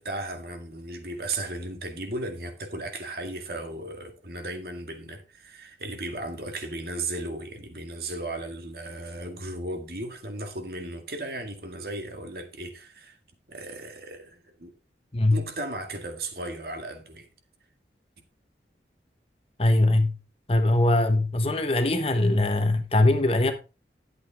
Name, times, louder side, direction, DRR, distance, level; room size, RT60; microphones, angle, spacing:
voice 1, 0.0-13.2 13.5-14.7 15.3-17.3, right 2 dB, 55° right, 2.0 m, -35 dB
voice 2, 19.6-20.1 20.5-23.5, left 2 dB, 35° left, 1.1 m, -21 dB
12.0 x 8.1 x 3.5 m
head